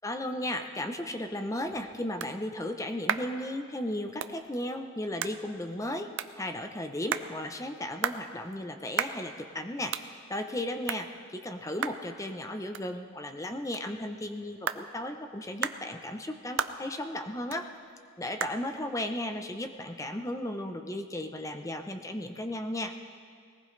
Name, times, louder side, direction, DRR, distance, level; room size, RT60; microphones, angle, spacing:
voice 1, 0.0-6.1 6.4-17.7 18.2-22.9, left 1 dB, 15° left, 6 dB, 0.7 m, -35 dB
sound 1, 1.3-20.6, right 7 dB, 60° right, 0.5 m, -39 dB
21.0 x 19.0 x 3.3 m, 2.1 s
head